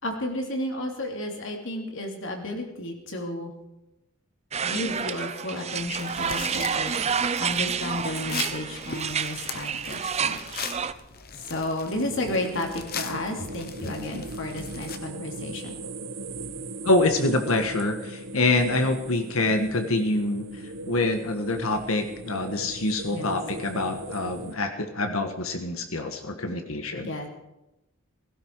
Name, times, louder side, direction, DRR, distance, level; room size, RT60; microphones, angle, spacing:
voice 1, 0.0-3.5 4.6-6.9 7.4-10.4 11.5-15.8 23.1-23.4 27.0-27.3, left 1 dB, 60° left, 2 dB, 3.0 m, -32 dB
sound 1, 4.5-10.9, right 6 dB, 30° right, 0.6 m, -29 dB
sound 2, 5.8-15.0, left 6 dB, 45° left, 1.2 m, -40 dB
sound 3, 11.9-24.5, right 2 dB, 65° right, 1.1 m, -38 dB
voice 2, 16.8-20.4 20.9-27.3, left 2 dB, 80° left, 6 dB, 1.6 m, -26 dB
16.5 x 16.5 x 4.8 m, 0.93 s
head